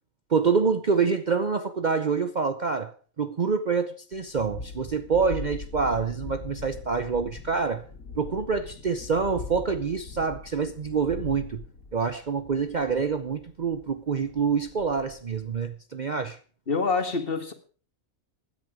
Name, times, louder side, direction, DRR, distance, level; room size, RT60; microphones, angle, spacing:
voice 1, 0.3-7.8 8.2-11.6 11.9-16.4, right 5 dB, 45° right, 0.7 m, -26 dB
Thunderstorm, 4.1-15.7, left 4 dB, 75° left, 2.9 m, -42 dB
voice 2, 16.7-17.5, left 4 dB, 45° left, 1.8 m, -26 dB
16.0 x 10.5 x 5.0 m
omnidirectional pair, 1.4 m